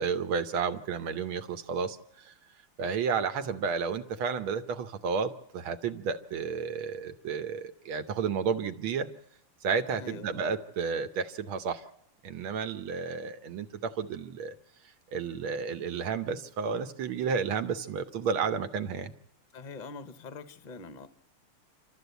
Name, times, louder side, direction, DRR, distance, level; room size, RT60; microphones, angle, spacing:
voice 1, 0.0-2.3 2.8-9.1 9.6-11.8 12.2-14.6 15.1-19.1, right 6 dB, 75° right, 1.8 m, -32 dB
voice 2, 10.0-10.4 19.5-21.1, left 4 dB, 50° left, 0.5 m, -43 dB
27.5 x 13.0 x 8.1 m
omnidirectional pair, 2.3 m